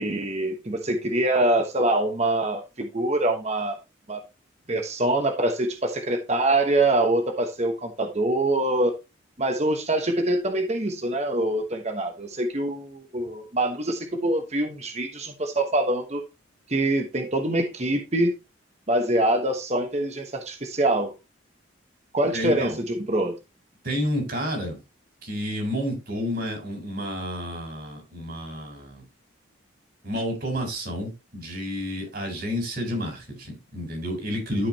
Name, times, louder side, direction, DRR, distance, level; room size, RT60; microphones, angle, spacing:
voice 1, 0.0-3.8 4.1-4.2 4.7-8.9 9.4-16.2 16.7-18.3 18.9-21.1 22.1-23.3, right 1 dB, 35° right, 1.1 m, -24 dB
voice 2, 22.3-22.8 23.8-24.8 25.2-29.0 30.0-34.7, equal, 50° right, 3.9 m, -30 dB
12.0 x 5.1 x 2.8 m
head